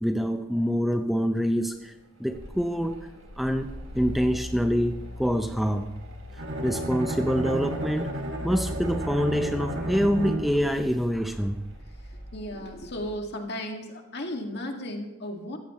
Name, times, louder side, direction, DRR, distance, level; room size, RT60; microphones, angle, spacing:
voice 1, 0.0-1.9 2.2-3.1 3.4-5.9 6.6-11.6, equal, ahead, 6 dB, 0.5 m, -26 dB
Mechanical fan, 1.8-13.1, left 1 dB, 85° right, 3.7 m, -41 dB
Bowed string instrument, 6.4-10.7, right 1 dB, 60° right, 2.1 m, -32 dB
voice 2, 12.3-15.6, left 1 dB, 55° left, 3 dB, 2.0 m, -35 dB
15.5 x 14.5 x 3.1 m, 1.0 s
head